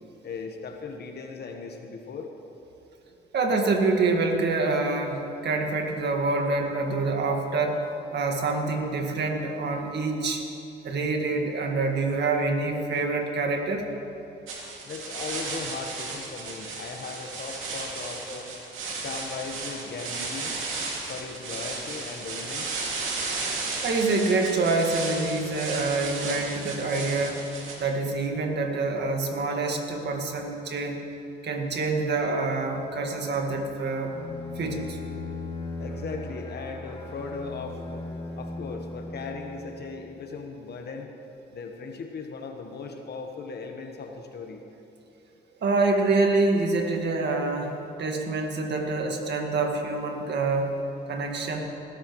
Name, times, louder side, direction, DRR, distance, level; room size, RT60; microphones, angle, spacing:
voice 1, 0.2-2.3 14.8-18.5 19.0-20.5 21.1-22.8 35.8-38.0 38.4-41.1 41.5-44.6, left 4 dB, 55° left, 3 dB, 1.2 m, -37 dB
voice 2, 3.3-7.8 8.1-10.4 10.8-13.9 23.8-27.4 27.8-31.0 31.4-34.1 34.6-35.0 45.6-50.7 51.1-51.6, right 3 dB, 60° right, 3 dB, 1.7 m, -26 dB
sound 1, 14.5-27.8, right 3 dB, 85° right, 2.4 m, -34 dB
Bowed string instrument, 34.1-39.9, left 2 dB, 25° left, 1.6 m, -38 dB
20.0 x 12.5 x 3.1 m, 2.8 s
cardioid pair, 90°, 20 cm